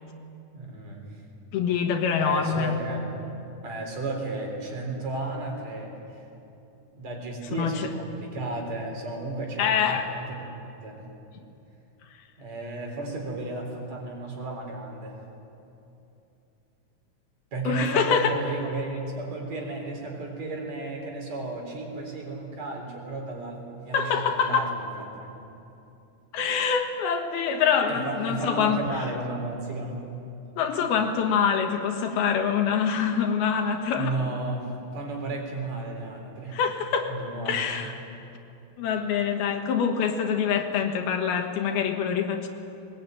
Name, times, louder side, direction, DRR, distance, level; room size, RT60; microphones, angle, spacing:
voice 1, 0.5-1.0 2.2-3.0 3.6-6.2 6.9-11.0 12.4-15.2 17.5-24.9 25.2-25.4 27.9-30.1 33.9-34.7 34.9-36.6 37.1-37.9, right 2 dB, 50° right, 0 dB, 4.8 m, -33 dB
voice 2, 1.5-2.8 7.6-7.9 9.6-10.1 17.7-18.4 23.9-24.8 26.3-29.0 30.6-34.1 36.5-37.1 37.5-37.9 38.8-42.5, left 7 dB, 85° left, 4 dB, 3.4 m, -25 dB
21.0 x 20.0 x 9.2 m, 2.8 s
omnidirectional pair, 4.3 m